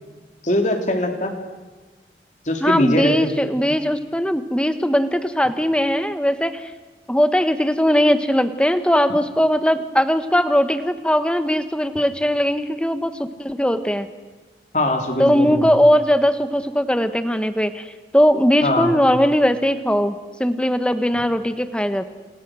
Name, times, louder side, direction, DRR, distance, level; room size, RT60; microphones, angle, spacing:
voice 1, 0.4-1.3 2.5-3.3 14.7-15.7 18.6-18.9, left 1 dB, 45° left, 4 dB, 3.4 m, -21 dB
voice 2, 2.6-6.7 7.1-14.1 15.2-17.9 18.1-22.0, equal, 5° left, 10 dB, 1.3 m, -19 dB
29.5 x 27.0 x 6.4 m, 1.3 s
head